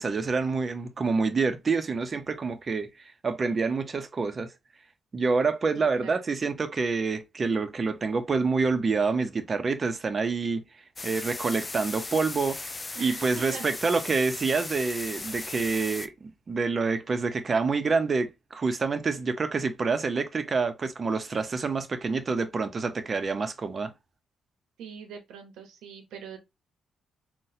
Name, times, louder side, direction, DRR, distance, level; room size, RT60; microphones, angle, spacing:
voice 1, 0.0-4.5 5.1-10.6 11.0-12.7 13.0-23.9, right 4 dB, 45° right, 0.6 m, -27 dB
voice 2, 5.7-6.1 12.9-13.7 24.8-26.4, right 6 dB, 85° right, 0.8 m, -43 dB
sound 1, 11.0-16.1, left 3 dB, 30° left, 0.4 m, -37 dB
3.9 x 2.2 x 2.7 m
supercardioid pair, 65°, 0 cm